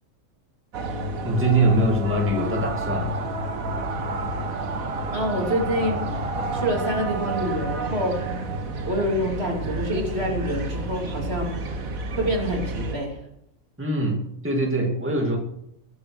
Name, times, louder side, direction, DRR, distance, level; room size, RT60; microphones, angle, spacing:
sound 1, 0.7-13.0, right 2 dB, 80° right, 1.8 m, -30 dB
voice 1, 1.2-3.1 13.8-14.2 14.4-15.4, right 2 dB, 10° right, 0 dB, 2.4 m, -22 dB
voice 2, 5.1-6.0 6.5-8.2 8.8-11.5 12.1-13.2, equal, 50° right, 0 dB, 3.3 m, -26 dB
21.5 x 8.4 x 6.2 m, 0.78 s
omnidirectional pair, 1.4 m